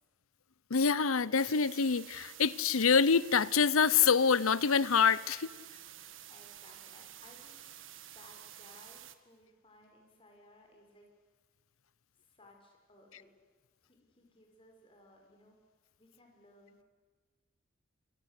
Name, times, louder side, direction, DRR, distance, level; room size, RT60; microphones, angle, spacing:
voice 1, 0.7-5.5, left 6 dB, 85° left, 0.8 m, -26 dB
sound 1, 1.4-9.2, right 11 dB, 65° right, 1.6 m, -51 dB
voice 2, 6.3-7.9 8.1-11.1 12.2-13.3 13.8-15.6 16.0-16.8, left 1 dB, 25° left, 5.8 m, -60 dB
28.0 x 24.5 x 8.4 m
head